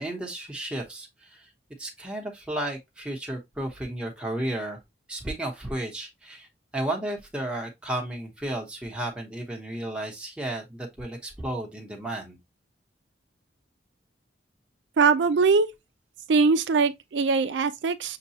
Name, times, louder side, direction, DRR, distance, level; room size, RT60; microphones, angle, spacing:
voice 1, 0.0-1.5 1.8-4.8 5.1-6.5 6.7-12.4, right 1 dB, 5° right, 1.1 m, -33 dB
voice 2, 15.0-15.7 16.3-18.2, right 4 dB, 90° right, 0.4 m, -21 dB
6.7 x 2.3 x 2.7 m
head